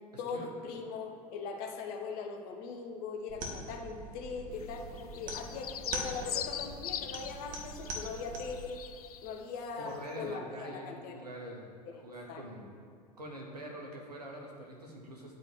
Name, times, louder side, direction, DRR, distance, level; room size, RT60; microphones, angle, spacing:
voice 1, 0.2-8.8 9.2-11.1 12.3-12.4, left 5 dB, 50° left, 3 dB, 1.2 m, -40 dB
sound 1, 3.3-8.7, right 1 dB, 45° right, 1.5 m, -42 dB
sound 2, 4.5-9.7 9.9-10.2, left 9 dB, 70° left, 0.5 m, -42 dB
voice 2, 9.8-11.7 12.0-12.6 13.2-15.4, right 1 dB, 85° right, -1 dB, 1.5 m, -44 dB
9.3 x 4.4 x 7.1 m, 2.1 s
figure-of-eight pair, 75°, 20 cm